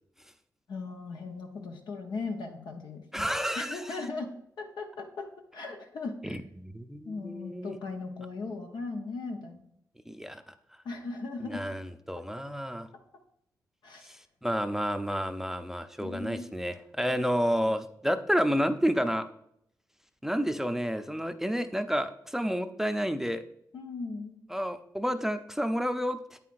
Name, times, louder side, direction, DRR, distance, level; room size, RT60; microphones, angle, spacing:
voice 1, 0.7-3.3 3.6-4.3 4.6-5.3 5.5-6.4 7.1-9.6 10.8-11.6 13.8-14.1 16.0-16.5 17.1-17.2 23.7-24.4, left 3 dB, 85° left, 3 dB, 0.8 m, -38 dB
voice 2, 3.1-4.0 6.2-7.8 10.1-10.4 11.5-12.9 14.0-14.2 14.4-19.2 20.2-23.4 24.5-26.2, equal, 5° right, 8 dB, 0.5 m, -30 dB
8.4 x 5.6 x 2.5 m, 0.72 s
cardioid pair, 60°, 7 cm